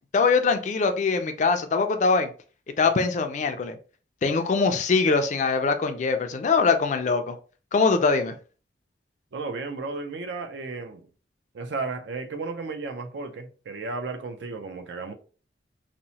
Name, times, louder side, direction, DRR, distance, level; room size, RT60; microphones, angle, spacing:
voice 1, 0.1-2.3 2.8-3.8 4.2-7.4 7.7-8.4, left 4 dB, 40° left, 0.3 m, -22 dB
voice 2, 9.3-11.1 11.5-15.1, right 3 dB, 70° right, 0.4 m, -34 dB
2.9 x 2.0 x 2.7 m
head